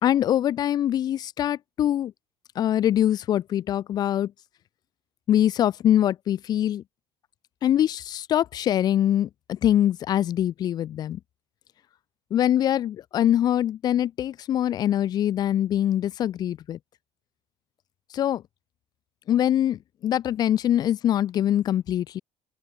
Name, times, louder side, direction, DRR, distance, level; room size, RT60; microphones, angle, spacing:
voice 1, 0.0-2.1 2.6-4.3 5.3-6.8 7.6-11.2 12.3-16.8 18.1-18.4 19.3-22.2, left 11 dB, 35° left, 2.3 m, -23 dB
open air
cardioid pair, 175°, 11 cm